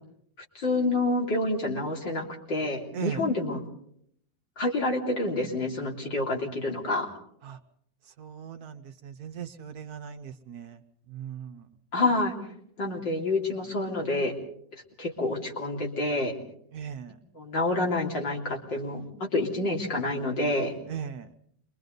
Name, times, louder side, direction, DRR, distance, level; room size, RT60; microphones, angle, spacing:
voice 1, 0.6-3.6 4.6-7.1 11.9-12.3 12.8-14.3 15.0-16.3 17.3-19.1 19.3-20.7, left 2 dB, 80° left, -1 dB, 4.0 m, -28 dB
voice 2, 2.9-3.2 7.4-7.6 8.2-10.8 11.1-11.7 16.7-17.2 20.9-21.3, right 8 dB, 60° right, 7 dB, 1.5 m, -38 dB
27.5 x 23.5 x 4.0 m, 0.68 s
omnidirectional pair, 1.9 m